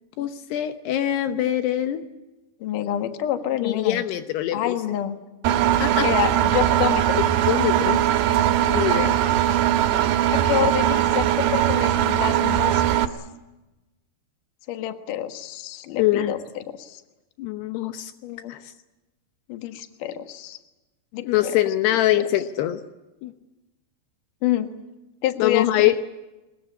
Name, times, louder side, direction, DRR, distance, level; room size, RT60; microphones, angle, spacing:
voice 1, 0.2-2.0 3.6-4.7 5.8-6.1 7.5-8.0 8.7-9.2 16.0-16.3 17.4-18.1 18.5-18.7 21.2-22.8 23.2-23.3 25.4-26.0, left 13 dB, 80° left, 9 dB, 3.0 m, -23 dB
voice 2, 2.6-4.0 4.5-5.2 6.0-7.2 10.3-13.0 14.7-17.0 18.2-18.5 19.5-20.6 21.1-21.6 24.4-24.7 25.2-25.9, left 11 dB, 60° left, 8 dB, 2.8 m, -28 dB
Engine, 5.4-13.1, right 11 dB, 80° right, 3.2 m, -20 dB
23.0 x 21.5 x 10.0 m, 1.1 s
omnidirectional pair, 4.8 m